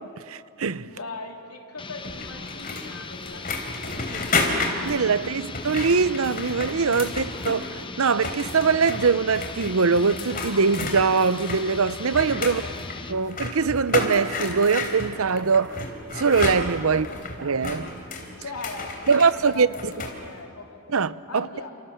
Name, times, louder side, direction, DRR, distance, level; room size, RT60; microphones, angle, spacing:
voice 1, 0.3-0.9 4.8-7.7 8.0-12.6 13.1-15.8 16.1-17.1 17.4-17.9 19.1-19.7 20.9-21.5, right 5 dB, 70° right, 0.7 m, -22 dB
voice 2, 0.9-4.6 5.1-5.2 7.0-7.5 12.4-13.0 16.9-17.3 18.4-21.7, left 3 dB, 90° left, 3.5 m, -40 dB
sound 1, 1.8-13.2, left 4 dB, 20° left, 0.9 m, -39 dB
sound 2, 2.0-7.8 8.1-20.2, left 3 dB, 40° left, 3.5 m, -32 dB
29.5 x 27.5 x 7.3 m
head